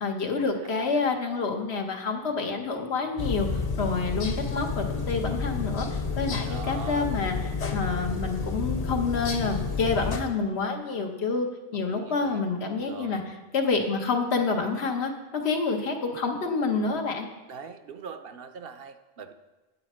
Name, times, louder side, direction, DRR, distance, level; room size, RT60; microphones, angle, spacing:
voice 1, 0.0-11.5 11.7-13.2 13.5-17.3, left 4 dB, 80° left, 3 dB, 1.3 m, -28 dB
sound 1, 3.2-10.2, left 4 dB, 45° left, 0.7 m, -30 dB
voice 2, 6.4-7.1 11.7-12.4 12.7-13.2 17.5-19.3, right 5 dB, 65° right, 8 dB, 0.8 m, -42 dB
8.9 x 8.4 x 4.3 m, 1.2 s
omnidirectional pair, 1.1 m